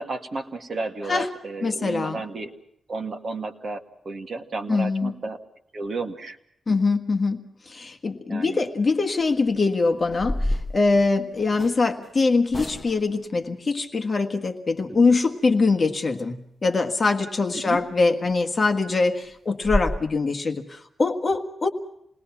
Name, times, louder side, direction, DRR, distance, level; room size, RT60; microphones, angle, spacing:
voice 1, 0.0-2.5 2.9-5.4 5.7-6.4 8.3-8.6 14.9-15.1 17.6-17.8, right 3 dB, 45° right, 4 dB, 2.0 m, -32 dB
voice 2, 1.6-2.2 4.7-5.1 6.7-21.7, left 3 dB, 30° left, 5 dB, 1.6 m, -23 dB
sound 1, 9.2-9.5 10.0-11.8 12.5-13.2 17.7-17.8 18.2-18.4 18.7-18.8 19.2-19.3 19.6-20.0, left 1 dB, ahead, 1.3 m, -29 dB
28.5 x 20.5 x 5.9 m, 0.75 s
wide cardioid pair, 170°, 0 cm